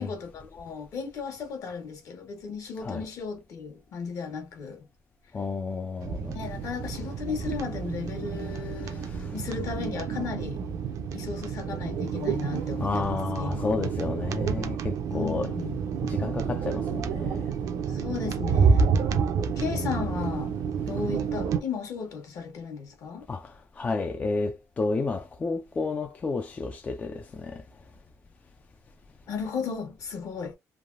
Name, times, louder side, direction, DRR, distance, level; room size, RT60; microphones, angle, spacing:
voice 1, 0.0-4.8 6.3-10.6 11.1-13.7 15.1-15.8 17.9-19.0 19.6-20.5 20.9-23.3 29.3-30.5, left 5 dB, 55° left, 1.1 m, -35 dB
voice 2, 5.3-6.4 8.4-9.3 12.8-15.5 16.0-17.5 19.6-20.2 23.3-27.6, left 4 dB, 25° left, 0.3 m, -31 dB
sound 1, 6.0-21.6, right 6 dB, 65° right, 0.5 m, -29 dB
3.3 x 2.2 x 2.5 m
cardioid pair, 125°, 6 cm